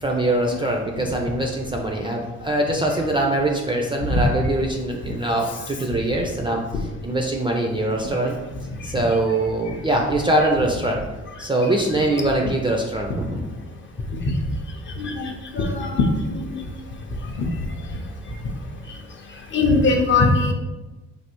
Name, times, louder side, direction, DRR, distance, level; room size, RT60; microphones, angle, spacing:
voice 1, 0.0-6.6 7.0-8.4 8.8-11.0 11.4-13.5, right 1 dB, 15° right, 1 dB, 0.3 m, -23 dB
voice 2, 15.0-16.6 17.4-17.5 19.5-20.5, left 3 dB, 40° left, 3 dB, 0.5 m, -20 dB
3.3 x 2.4 x 2.9 m, 1.1 s
cardioid pair, 90°, 30 cm